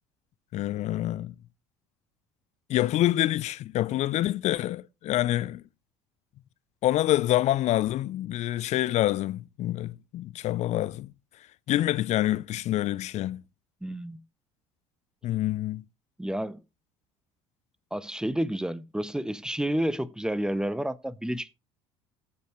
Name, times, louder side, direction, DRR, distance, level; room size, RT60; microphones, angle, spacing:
voice 1, 0.5-1.3 2.7-5.6 6.8-11.1 11.7-13.4 15.2-15.8, left 14 dB, 50° left, 0.5 m, -26 dB
voice 2, 13.8-14.2 16.2-16.6 17.9-21.5, right 1 dB, 5° right, 0.7 m, -30 dB
15.0 x 5.4 x 3.2 m
hypercardioid pair, 65°, 15 cm